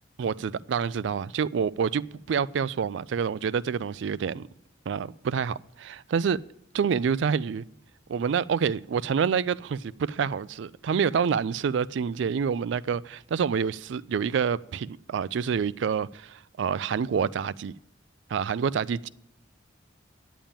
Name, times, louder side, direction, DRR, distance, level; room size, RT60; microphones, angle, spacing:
voice 1, 0.2-4.5 4.9-6.4 6.7-7.6 8.1-17.7 18.3-19.1, right 6 dB, 70° right, 0.3 m, -27 dB
10.0 x 7.1 x 7.3 m
head